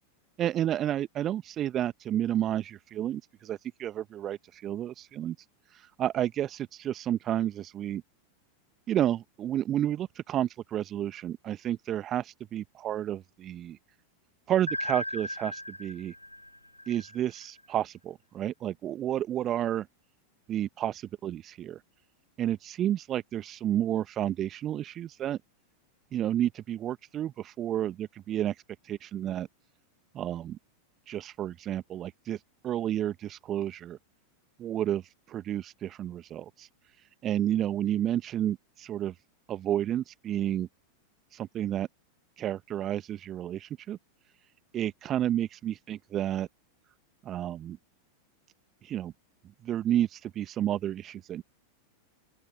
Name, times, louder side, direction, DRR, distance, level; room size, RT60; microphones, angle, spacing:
voice 1, 0.4-5.4 5.7-8.0 8.9-13.8 14.5-16.1 16.9-19.9 20.5-21.8 22.4-25.4 26.1-28.5 28.9-29.5 30.1-30.6 31.1-34.0 34.6-36.7 37.2-39.1 39.5-40.7 41.3-41.9 42.4-44.0 44.7-46.5 47.2-47.8 48.8-49.1 49.6-51.4, right 11 dB, 30° right, 1.0 m, -31 dB
sound 1, 14.7-17.6, left 1 dB, 85° left, 0.8 m, -37 dB
open air
figure-of-eight pair, 90°, 0 cm